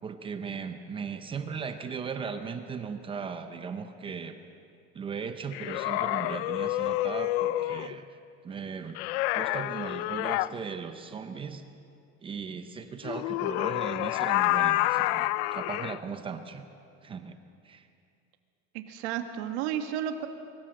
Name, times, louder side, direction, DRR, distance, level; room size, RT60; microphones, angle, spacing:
voice 1, 0.0-4.4 4.9-8.1 8.4-9.0 9.3-11.6 12.2-16.6 17.0-17.4 17.6-17.9, right 6 dB, 15° right, 8 dB, 0.6 m, -37 dB
sound 1, 5.5-7.9 8.9-10.5 13.0-16.0, left 17 dB, 65° left, 0.6 m, -28 dB
voice 2, 18.7-20.3, right 10 dB, 80° right, 6 dB, 1.8 m, -32 dB
24.0 x 14.5 x 7.6 m, 2.4 s
cardioid pair, 175°, 34 cm